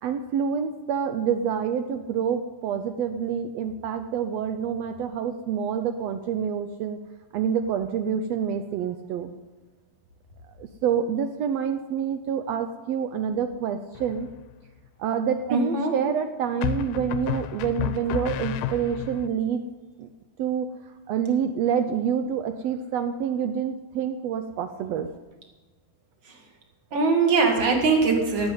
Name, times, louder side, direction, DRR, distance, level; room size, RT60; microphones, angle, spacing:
voice 1, 0.0-7.0 7.3-9.3 10.6-14.3 15.0-19.6 20.0-20.1 20.4-20.7 21.1-25.1, right 7 dB, 80° right, 9 dB, 1.5 m, -27 dB
sound 1, 14.0-14.5 16.6-19.3, left 9 dB, 85° left, 2.3 m, -31 dB
voice 2, 15.5-15.9 26.2-26.4 26.9-28.5, right 4 dB, 40° right, 2 dB, 2.7 m, -22 dB
17.0 x 6.7 x 9.1 m, 1.2 s
omnidirectional pair, 3.7 m